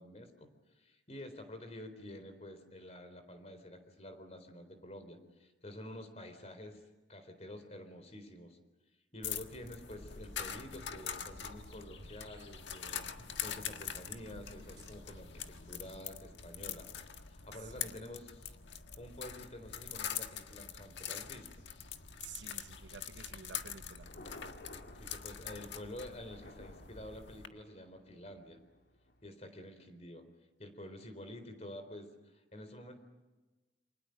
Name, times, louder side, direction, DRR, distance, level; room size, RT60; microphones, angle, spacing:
voice 1, 0.0-6.8 7.1-8.6 9.1-16.9 17.2-18.6 19.0-21.5 25.0-28.6 29.2-30.3 30.6-33.0, left 1 dB, 35° left, 8 dB, 3.9 m, -49 dB
sound 1, 9.2-27.5, left 8 dB, 90° left, 1.6 m, -44 dB
sound 2, 9.6-16.0, right 1 dB, 25° right, 2.8 m, -64 dB
voice 2, 17.5-18.0 22.2-24.1, right 6 dB, 85° right, 9 dB, 1.0 m, -52 dB
Thunder, 23.4-29.3, left 1 dB, 65° left, 2.8 m, -56 dB
28.5 x 26.0 x 6.6 m, 1.2 s
head